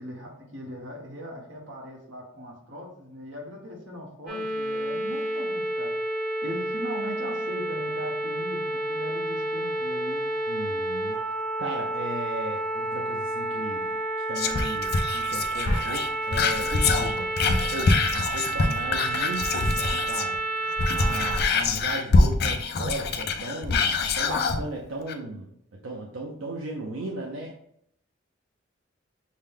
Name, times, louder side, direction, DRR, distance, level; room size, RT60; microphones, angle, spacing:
voice 1, 0.0-5.9 6.4-10.2, equal, 70° right, -1 dB, 1.2 m, -39 dB
sound 1, 4.3-21.4, right 2 dB, 45° right, 1.2 m, -30 dB
voice 2, 10.5-11.2 11.6-14.0 14.3-17.3 17.7-20.3 20.9-25.5 25.8-27.5, right 2 dB, 85° right, -1 dB, 0.6 m, -36 dB
Whispering, 14.4-20.4 20.7-24.6 25.1-25.2, left 3 dB, 55° left, 0.5 m, -25 dB
6.4 x 2.2 x 3.6 m, 0.72 s
head